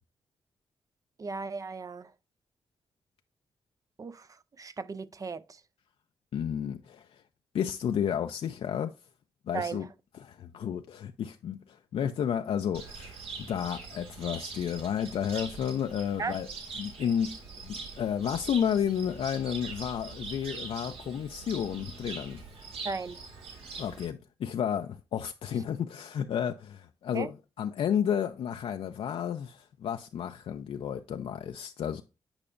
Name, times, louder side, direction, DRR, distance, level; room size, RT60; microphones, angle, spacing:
voice 1, 1.2-2.1 4.0-4.3 4.6-5.4 9.5-9.8 16.2-16.4 22.8-23.2 27.1-27.3, right 4 dB, 35° right, 0.4 m, -35 dB
voice 2, 6.3-7.2 7.5-8.9 9.5-9.9 10.2-16.5 16.8-22.4 23.8-32.0, left 8 dB, 75° left, 0.4 m, -32 dB
Cricket, 12.7-24.0, right 4 dB, 80° right, 2.0 m, -43 dB
8.7 x 4.8 x 2.5 m
cardioid pair, 80°, 10 cm